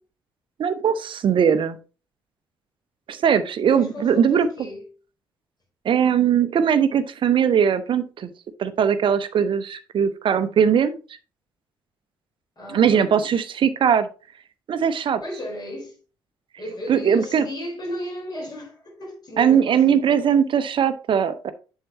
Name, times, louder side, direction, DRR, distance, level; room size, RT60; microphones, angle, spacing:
voice 1, 0.6-1.8 3.1-4.5 5.8-8.3 8.6-11.0 12.7-14.1 14.7-15.2 16.9-17.4 19.4-21.5, right 8 dB, 45° right, 0.7 m, -20 dB
voice 2, 3.7-4.9 12.6-13.1 15.2-16.0 16.6-20.2, left 1 dB, 35° left, 4.2 m, -35 dB
7.6 x 6.5 x 2.8 m
figure-of-eight pair, 45°, 12 cm